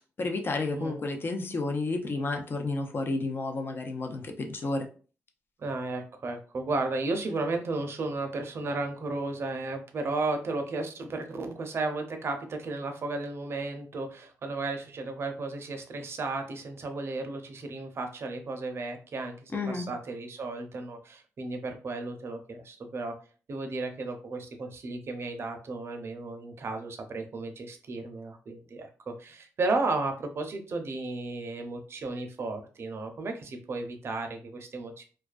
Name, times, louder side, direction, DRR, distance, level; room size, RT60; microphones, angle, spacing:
voice 1, 0.0-4.9 19.5-19.9, left 3 dB, 45° left, 4 dB, 0.5 m, -31 dB
voice 2, 5.6-23.1 23.5-35.0, right 3 dB, 55° right, 5 dB, 0.6 m, -34 dB
2.3 x 2.2 x 2.4 m, 0.37 s
cardioid pair, 70°, 5 cm